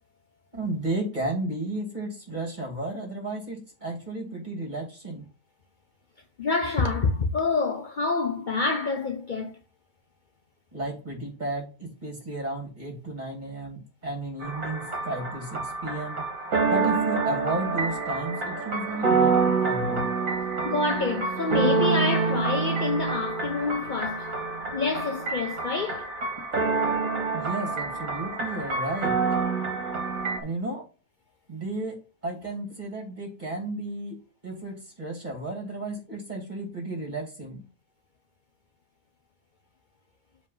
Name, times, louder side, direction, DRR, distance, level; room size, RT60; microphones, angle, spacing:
voice 1, 0.5-5.2 10.7-16.2 16.7-20.0 27.3-29.2 30.4-30.8 31.5-37.6, right 2 dB, 25° right, 2.6 m, -33 dB
voice 2, 6.4-9.6 20.6-24.3 24.7-26.1, left 3 dB, 85° left, 0.4 m, -27 dB
sound 1, 14.4-30.4, right 4 dB, 50° right, 2.0 m, -27 dB
7.4 x 3.7 x 5.4 m
omnidirectional pair, 1.8 m